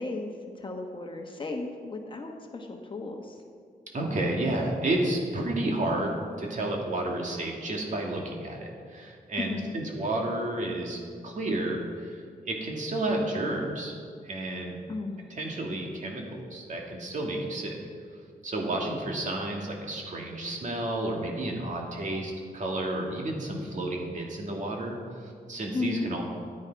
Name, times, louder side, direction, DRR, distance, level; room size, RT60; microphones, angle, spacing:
voice 1, 0.0-3.4 9.4-9.8 14.9-15.2 25.7-26.1, left 3 dB, 30° left, 2 dB, 1.2 m, -34 dB
voice 2, 3.9-13.9 14.2-14.8 15.3-17.8 18.4-26.2, right 1 dB, 50° right, 0 dB, 2.1 m, -31 dB
14.0 x 9.9 x 4.7 m, 2.1 s
wide cardioid pair, 165°, 16 cm